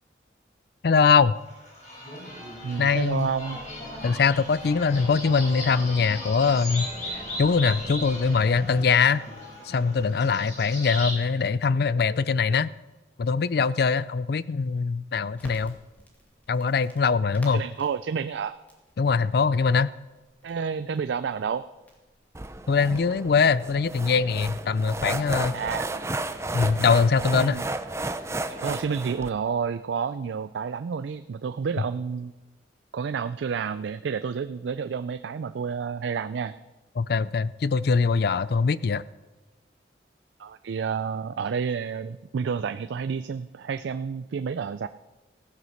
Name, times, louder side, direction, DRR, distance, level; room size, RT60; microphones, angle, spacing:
voice 1, 0.8-1.4 2.8-3.3 4.0-6.9 7.1-9.2 9.6-12.7 13.2-15.8 16.5-17.6 19.0-19.9 22.7-25.6 26.5-27.6 37.0-39.0, left 5 dB, 60° left, 18 dB, 0.4 m, -22 dB
sound 1, 1.5-11.2, left 1 dB, 40° left, 5.4 m, -37 dB
voice 2, 2.6-3.6 17.5-18.5 20.4-21.7 25.5-26.0 27.3-27.6 28.5-32.3 32.9-36.5 40.4-44.9, right 6 dB, 80° right, 12 dB, 0.4 m, -30 dB
Crackle, 15.4-23.3, equal, 10° left, 2.2 m, -53 dB
sound 2, 22.3-29.3, right 2 dB, 15° right, 0.6 m, -32 dB
15.5 x 9.4 x 6.4 m, 1.2 s
head